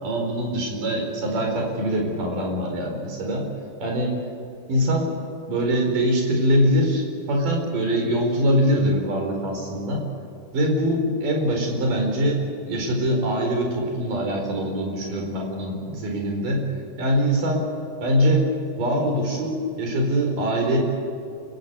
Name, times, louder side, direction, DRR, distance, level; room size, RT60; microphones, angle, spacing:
voice 1, 0.0-3.5 3.8-4.2 4.7-5.1 5.5-10.0 10.5-16.6 17.0-17.7 18.0-18.5 18.8-20.8, equal, 80° right, 1 dB, 6.2 m, -23 dB
29.5 x 15.5 x 8.3 m, 2.6 s
omnidirectional pair, 3.7 m